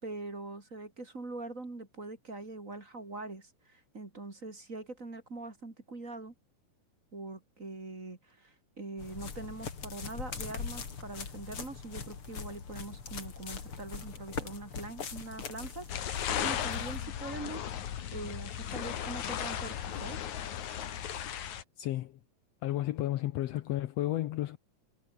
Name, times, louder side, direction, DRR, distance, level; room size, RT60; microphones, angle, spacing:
voice 1, 0.0-6.3 7.1-20.3, right 2 dB, 25° right, 3.2 m, -43 dB
sound 1, 9.0-17.1, left 5 dB, 40° left, 3.5 m, -42 dB
sound 2, 15.9-21.6, left 9 dB, 60° left, 3.1 m, -36 dB
voice 2, 21.8-22.2 22.6-24.6, left 14 dB, 90° left, 1.4 m, -32 dB
omnidirectional pair, 4.0 m